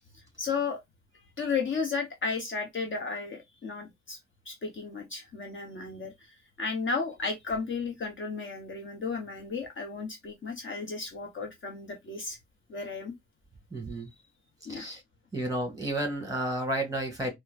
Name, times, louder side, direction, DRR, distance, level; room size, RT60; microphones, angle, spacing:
voice 1, 0.1-0.8 1.4-4.2 4.5-12.4 12.7-13.1 14.6-14.9, left 4 dB, 40° left, 0.9 m, -34 dB
voice 2, 13.7-14.1 14.7-15.0 15.3-17.3, right 1 dB, 10° right, 2.0 m, -31 dB
4.4 x 2.1 x 2.4 m
cardioid pair, 90°, 30 cm